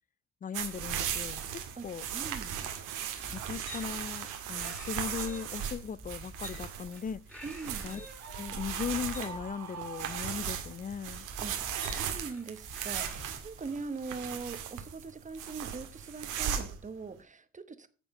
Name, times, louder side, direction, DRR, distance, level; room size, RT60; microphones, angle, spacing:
voice 1, 0.4-2.0 3.3-7.2 7.8-11.3, left 7 dB, 30° left, 0.4 m, -38 dB
sound 1, 0.5-16.9, right 9 dB, 90° right, 1.9 m, -37 dB
sound 2, 1.9-13.7, equal, 5° left, 2.5 m, -49 dB
voice 2, 2.1-2.6 7.4-7.9 11.4-11.5 11.9-17.9, right 4 dB, 25° right, 1.1 m, -41 dB
Screaming, 8.2-10.9, right 7 dB, 60° right, 1.5 m, -45 dB
9.8 x 7.2 x 5.4 m
cardioid pair, 90°, 30 cm